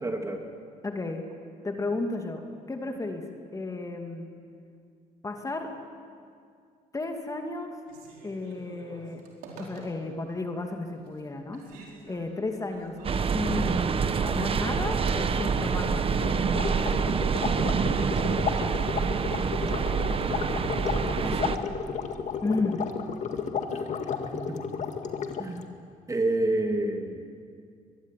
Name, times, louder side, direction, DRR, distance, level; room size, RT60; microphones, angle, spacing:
voice 1, 0.0-0.4 20.9-21.5 23.7-23.8 24.3-24.6 25.4-25.6 26.1-27.2, right 2 dB, 20° right, 4 dB, 3.0 m, -29 dB
voice 2, 0.8-1.2 1.6-2.4 2.7-3.3 3.5-4.3 5.2-5.7 6.9-7.8 8.2-9.2 9.6-13.0 13.3-16.2 22.4-22.8, left 3 dB, 20° left, 4 dB, 2.6 m, -33 dB
Telephone, 7.8-10.3 10.7-11.2 11.5-16.6, right 3 dB, 90° right, 4.8 m, -47 dB
sound 1, 13.0-21.6, right 5 dB, 40° right, 1.2 m, -26 dB
sound 2, 16.2-25.6, left 6 dB, 55° left, 2.1 m, -33 dB
23.0 x 22.5 x 9.3 m, 2.2 s
cardioid pair, 95°, 15 cm